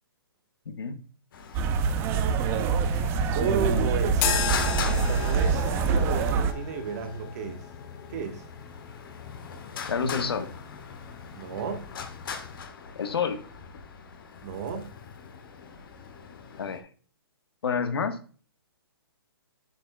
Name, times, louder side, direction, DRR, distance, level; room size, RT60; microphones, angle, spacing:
voice 1, 0.7-1.0 9.9-10.5 12.9-13.4 16.6-16.9 17.6-18.2, left 6 dB, 75° left, 1.2 m, -28 dB
Traffic noise roadway noise, 1.3-16.8, left 6 dB, 60° left, 1.4 m, -42 dB
sound 1, 1.5-6.5, right 5 dB, 20° right, 0.5 m, -25 dB
voice 2, 3.3-4.4 4.8-7.7 8.1-8.4 11.3-11.9 14.4-14.9, right 6 dB, 40° right, 1.3 m, -33 dB
sound 2, 4.1-12.7, left 8 dB, 25° left, 0.6 m, -36 dB
8.1 x 6.9 x 2.3 m
hypercardioid pair, 150°, 13 cm